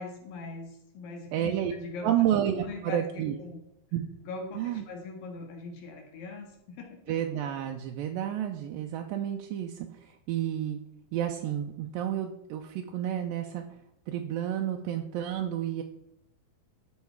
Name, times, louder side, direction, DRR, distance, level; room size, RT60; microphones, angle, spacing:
voice 1, 0.0-2.1 2.6-3.6 4.2-7.2, left 3 dB, 70° left, 2 dB, 3.4 m, -41 dB
voice 2, 1.3-1.7 2.0-3.4 3.9-4.0 4.6-4.8 7.1-10.8 11.1-13.6 14.1-15.8, right 11 dB, 80° right, 3 dB, 2.2 m, -30 dB
12.5 x 4.8 x 4.6 m, 0.84 s
omnidirectional pair, 4.4 m